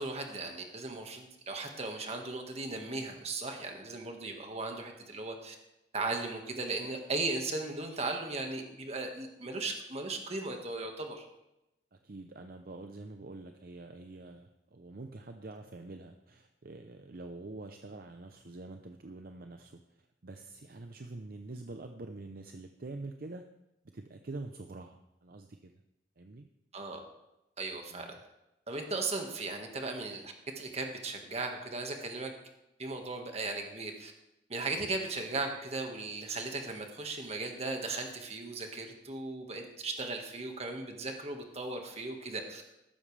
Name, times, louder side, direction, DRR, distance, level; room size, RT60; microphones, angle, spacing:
voice 1, 0.0-5.5 5.9-11.2 26.7-27.0 27.6-28.2 28.7-32.3 32.8-34.1 34.5-42.6, right 3 dB, 35° right, 3 dB, 1.7 m, -37 dB
voice 2, 11.9-23.4 23.9-25.7 26.2-26.5 27.9-28.2, right 2 dB, 55° right, 6 dB, 0.7 m, -46 dB
14.0 x 12.5 x 3.4 m, 0.91 s
head